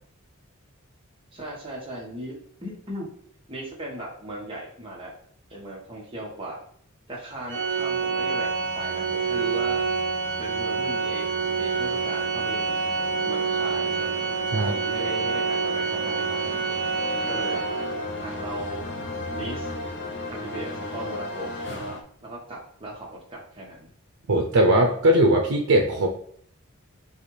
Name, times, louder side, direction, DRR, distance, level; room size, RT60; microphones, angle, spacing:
voice 1, 1.3-2.3 2.6-3.1 3.5-5.1 5.5-6.6 7.1-9.8 10.4-14.1 14.5-16.6 17.3-17.6 18.2-18.8 19.3-19.7 20.3-23.9, right 1 dB, 25° right, -3 dB, 1.3 m, -37 dB
sound 1, 7.3-22.0, left 2 dB, 55° left, 0.6 m, -37 dB
Organ, 7.5-18.2, right 5 dB, 55° right, 1.6 m, -27 dB
voice 2, 24.3-26.1, right 1 dB, 85° right, 1 dB, 0.6 m, -19 dB
6.9 x 2.4 x 3.2 m, 0.63 s
head